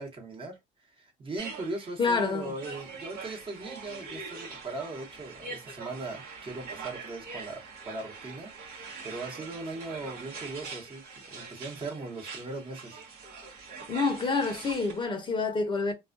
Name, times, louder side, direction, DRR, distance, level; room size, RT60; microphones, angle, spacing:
voice 1, 0.0-13.0, right 2 dB, 30° right, 1.0 m, -39 dB
sound 1, 1.4-15.0, right 4 dB, 65° right, 1.0 m, -43 dB
voice 2, 2.0-2.5 13.9-15.9, left 4 dB, 30° left, 0.6 m, -27 dB
2.3 x 2.2 x 2.5 m
cardioid pair, 110°, 17 cm